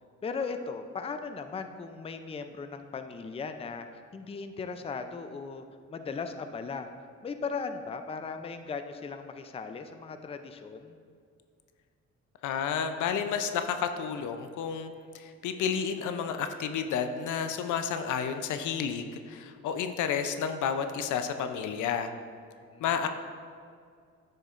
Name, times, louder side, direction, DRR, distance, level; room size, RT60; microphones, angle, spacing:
voice 1, 0.2-3.9 4.1-6.9 7.2-11.0 22.7-23.1, left 5 dB, 20° left, 8 dB, 0.4 m, -37 dB
voice 2, 12.4-22.1 22.8-23.1, left 7 dB, 80° left, 8 dB, 0.6 m, -31 dB
9.8 x 6.5 x 2.5 m, 2.2 s
cardioid pair, 90°, 30 cm